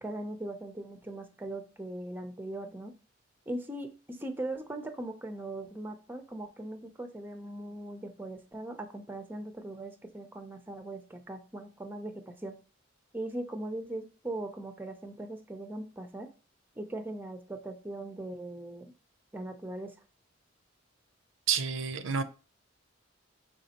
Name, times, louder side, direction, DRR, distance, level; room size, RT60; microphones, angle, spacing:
voice 1, 0.0-2.9 3.5-12.5 13.1-16.3 16.8-18.9 19.3-19.9, right 1 dB, 10° right, 0.5 m, -40 dB
voice 2, 21.5-22.2, right 7 dB, 80° right, 0.5 m, -29 dB
5.1 x 3.5 x 2.9 m
head